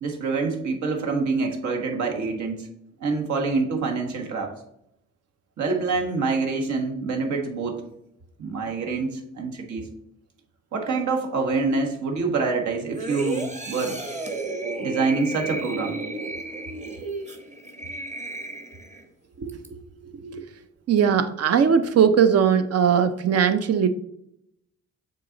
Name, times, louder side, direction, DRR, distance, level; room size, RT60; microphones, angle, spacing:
voice 1, 0.0-2.7 3.0-4.5 5.6-7.8 8.4-9.9 10.7-14.0 14.8-16.0, right 4 dB, 70° right, 2 dB, 1.4 m, -26 dB
sound 1, 12.9-19.1 19.5-19.7, right 2 dB, 25° right, 1.1 m, -32 dB
voice 2, 19.4-20.4 20.9-23.9, right 7 dB, 55° right, 10 dB, 0.6 m, -20 dB
6.7 x 4.0 x 3.9 m, 0.78 s
cardioid pair, 90°, 30 cm